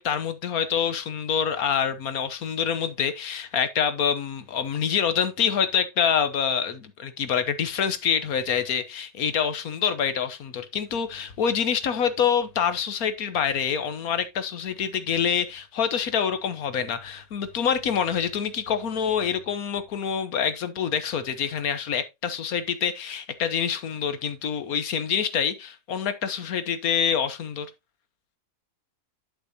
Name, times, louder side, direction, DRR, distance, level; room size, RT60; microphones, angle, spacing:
voice 1, 0.0-27.7, left 7 dB, 80° left, 1.5 m, -26 dB
11.5 x 6.1 x 2.8 m
omnidirectional pair, 1.5 m